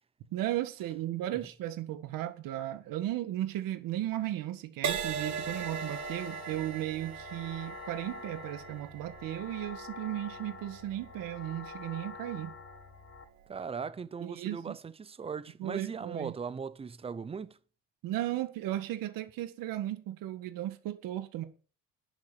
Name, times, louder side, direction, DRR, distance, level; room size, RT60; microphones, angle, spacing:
voice 1, 0.3-12.5 14.2-14.8 15.6-16.3 18.0-21.4, right 13 dB, 70° right, 1.8 m, -35 dB
Crash cymbal, 4.8-12.5 13.1-13.4, right 8 dB, 55° right, 1.7 m, -40 dB
sound 1, 5.1-13.2, left 5 dB, 40° left, 1.8 m, -47 dB
voice 2, 13.5-17.6, right 6 dB, 15° right, 0.6 m, -38 dB
11.0 x 8.1 x 6.9 m
cardioid pair, 160°, 35 cm